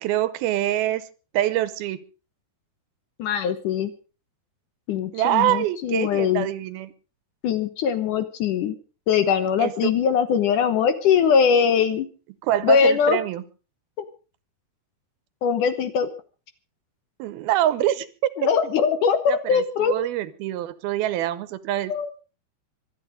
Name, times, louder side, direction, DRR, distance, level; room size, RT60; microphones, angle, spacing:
voice 1, 0.0-1.0 1.3-2.0 5.1-6.9 9.6-9.9 12.4-13.4 17.2-18.3 19.3-21.9, right 13 dB, 80° right, 15 dB, 2.7 m, -25 dB
voice 2, 3.2-3.9 4.9-6.5 7.4-8.8 9.1-12.1 12.6-13.2 15.4-16.1 18.4-19.9 21.9-22.1, left 7 dB, 65° left, 10 dB, 2.3 m, -21 dB
25.0 x 9.4 x 5.1 m, 0.36 s
omnidirectional pair, 4.5 m